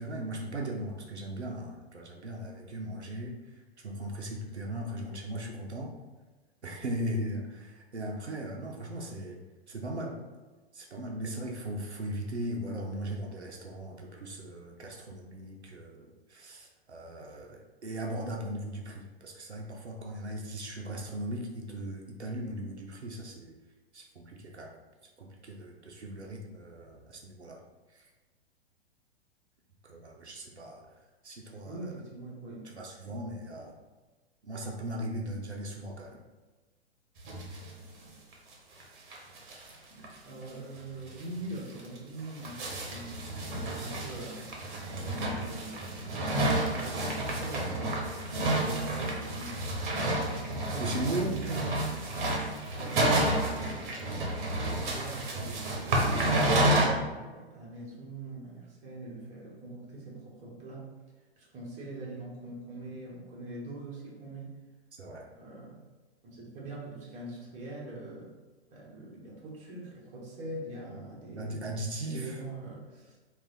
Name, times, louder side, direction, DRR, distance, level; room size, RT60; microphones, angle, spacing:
voice 1, 0.0-3.3 3.8-5.9 6.6-9.4 9.7-10.2 10.7-23.6 23.9-24.8 25.2-27.6 27.9-28.0 29.8-30.9 31.2-31.9 32.6-33.8 34.4-36.2 50.8-51.4 64.9-65.3 70.9-71.0 71.3-72.4, right 1 dB, 85° right, 0 dB, 0.6 m, -38 dB
voice 2, 31.6-32.7 33.1-33.4 39.9-43.2 43.5-44.5 45.0-46.4 46.7-48.1 48.3-49.6 50.5-51.9 52.4-60.9 61.4-64.6 65.4-65.8 66.2-68.3 68.7-71.7 72.0-73.2, right 2 dB, 20° right, -4 dB, 1.0 m, -43 dB
sound 1, 37.2-37.7 38.0-38.1 38.3-38.4 38.8-38.9 39.1-39.7 40.0-40.1 40.5-40.6 41.1-41.2 41.8-56.9, right 1 dB, 50° right, 0.9 m, -30 dB
3.2 x 2.4 x 3.8 m, 1.2 s
figure-of-eight pair, 110°, 33 cm